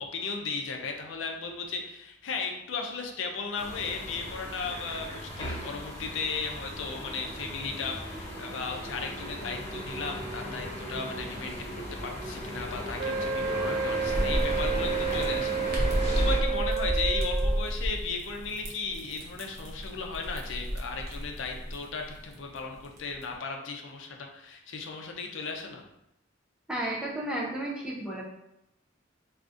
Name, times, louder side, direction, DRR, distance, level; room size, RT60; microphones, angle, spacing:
voice 1, 0.0-11.7 12.0-25.8, left 4 dB, 70° left, 3 dB, 0.5 m, -36 dB
sound 1, 3.5-16.4, equal, 35° left, 1.2 m, -37 dB
Wind instrument woodwind instrument, 13.0-17.7, right 6 dB, 85° right, 0.3 m, -31 dB
sound 2, 14.1-23.3, equal, 50° right, 0.6 m, -31 dB
voice 2, 26.7-28.2, right 1 dB, 5° right, -4 dB, 0.4 m, -32 dB
3.6 x 2.4 x 2.5 m, 0.83 s
head